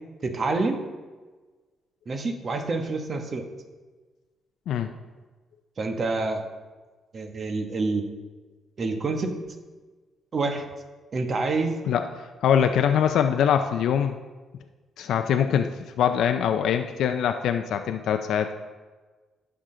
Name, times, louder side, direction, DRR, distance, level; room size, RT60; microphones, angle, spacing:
voice 1, 0.2-0.8 2.1-3.4 5.8-6.4 7.1-8.1 8.8-9.3 10.3-10.6 11.1-11.8, right 3 dB, 45° right, 5 dB, 1.1 m, -27 dB
voice 2, 11.9-14.2 15.0-15.7 16.0-18.5, left 8 dB, 75° left, 7 dB, 0.5 m, -23 dB
11.0 x 5.9 x 3.8 m, 1.3 s
cardioid pair, 90°, 0 cm